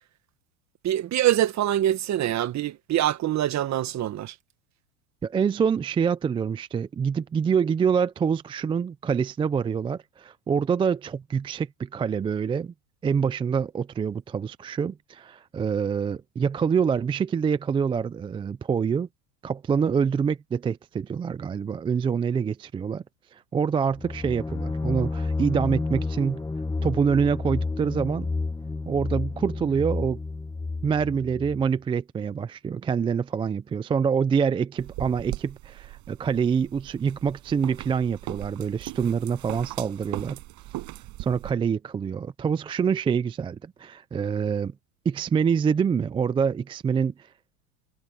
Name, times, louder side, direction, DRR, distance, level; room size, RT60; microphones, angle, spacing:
voice 1, 0.8-4.3, right 12 dB, 35° right, 1.5 m, -24 dB
voice 2, 5.2-12.7 13.0-19.1 19.4-23.0 23.3-26.4 26.8-28.3 28.9-30.2 30.8-40.4 41.2-44.7 45.1-47.3, right 6 dB, 15° right, 0.3 m, -26 dB
sound 1, 23.9-31.7, left 3 dB, 10° left, 1.4 m, -30 dB
sound 2, 34.8-41.5, right 18 dB, 50° right, 6.0 m, -39 dB
supercardioid pair, 115°, 46 cm